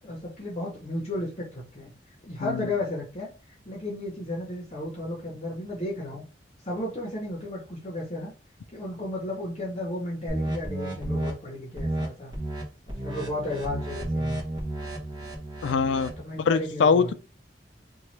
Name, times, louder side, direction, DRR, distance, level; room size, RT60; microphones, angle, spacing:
voice 1, 0.0-1.9 2.2-6.2 6.6-8.3 8.7-12.3 12.9-14.4 16.2-17.1, left 1 dB, 35° left, 0.7 m, -34 dB
sound 1, 10.3-11.3 11.8-12.1 12.3-12.6 12.9-16.2, right 1 dB, 25° right, 1.0 m, -32 dB
voice 2, 15.6-16.1 16.5-17.1, left 5 dB, 90° left, 0.4 m, -23 dB
2.9 x 2.3 x 3.1 m
head